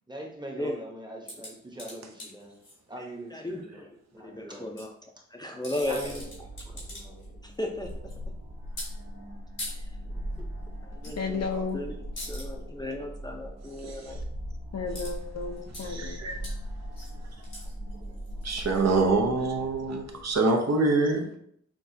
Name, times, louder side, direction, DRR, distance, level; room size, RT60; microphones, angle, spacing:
voice 1, 0.1-2.5 2.9-3.8 4.1-4.8 5.9-6.2 6.6-7.4 10.4-10.5, right 1 dB, 15° right, 0 dB, 0.9 m, -41 dB
sound 1, 1.3-2.8 4.5-4.9 5.5-7.3 7.5-8.1 8.8-8.9 9.6-9.7 11.0-11.2 11.5-11.7 12.2-12.5 14.9-15.1 15.4-15.9 16.4-16.5 16.9-19.5 20.1-20.2, left 1 dB, 90° left, 1.7 m, -42 dB
voice 2, 3.0-6.2 6.7-6.9 7.4-7.9 9.6-9.9 10.9-11.5 11.7-14.2, left 1 dB, 15° left, 1 dB, 0.5 m, -36 dB
sound 2, 5.8-20.3, equal, 80° right, 1.2 m, -40 dB
voice 3, 11.2-11.8 14.7-16.2, left 4 dB, 60° left, 4 dB, 0.6 m, -33 dB
voice 4, 13.8-14.1 15.8-16.4 18.4-21.3, right 3 dB, 60° right, 3 dB, 0.7 m, -25 dB
6.0 x 2.4 x 2.7 m, 0.67 s
wide cardioid pair, 100°, 29 cm